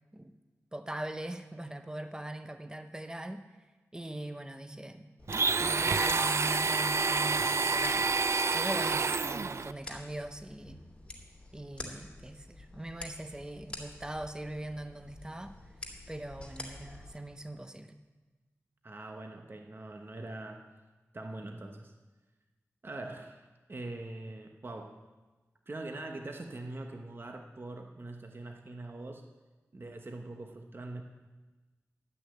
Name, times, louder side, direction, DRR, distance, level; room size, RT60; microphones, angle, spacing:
voice 1, 0.7-3.5 3.9-10.8 11.5-15.6 16.1-18.0, right 1 dB, 15° right, 8 dB, 0.7 m, -41 dB
sound 1, 5.2-17.2, left 1 dB, 20° left, 2.9 m, -48 dB
Domestic sounds home sounds, 5.3-9.7, right 4 dB, 60° right, 0.3 m, -28 dB
voice 2, 18.8-20.7 21.1-21.9 22.8-25.0 25.7-29.2 29.7-31.0, right 2 dB, 45° right, 3 dB, 1.0 m, -43 dB
12.0 x 6.3 x 8.6 m, 1.2 s
wide cardioid pair, 65°, 5 cm